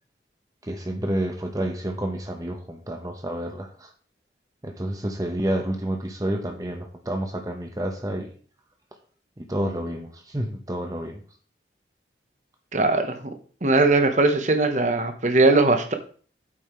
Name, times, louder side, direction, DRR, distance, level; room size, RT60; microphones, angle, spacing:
voice 1, 0.6-3.9 4.6-8.3 9.4-11.2, right 1 dB, 20° right, 4 dB, 0.9 m, -29 dB
voice 2, 12.7-13.2 13.6-15.9, right 2 dB, 40° right, 6 dB, 1.0 m, -20 dB
8.6 x 5.6 x 4.4 m, 0.43 s
head